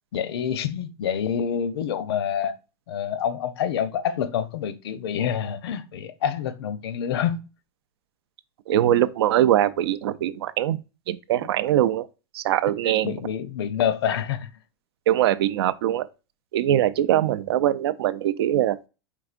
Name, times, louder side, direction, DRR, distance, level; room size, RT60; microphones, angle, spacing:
voice 1, 0.1-2.6 2.9-7.5 13.0-14.5, left 8 dB, 85° left, 0.6 m, -27 dB
voice 2, 8.7-10.8 11.1-12.1 12.3-13.1 15.1-16.1 16.5-18.8, right 12 dB, 80° right, 0.4 m, -22 dB
4.7 x 3.5 x 2.4 m
supercardioid pair, 170°, 13 cm